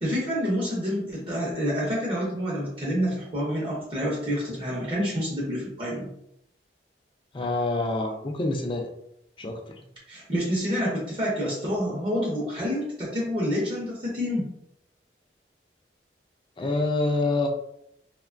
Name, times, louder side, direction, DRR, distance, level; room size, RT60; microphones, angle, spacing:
voice 1, 0.0-6.1 10.1-14.5, equal, 30° right, -4 dB, 0.6 m, -28 dB
voice 2, 7.3-8.9 9.4-9.7 16.6-17.5, left 2 dB, 30° left, 3 dB, 0.3 m, -26 dB
2.8 x 2.2 x 2.4 m, 0.76 s
head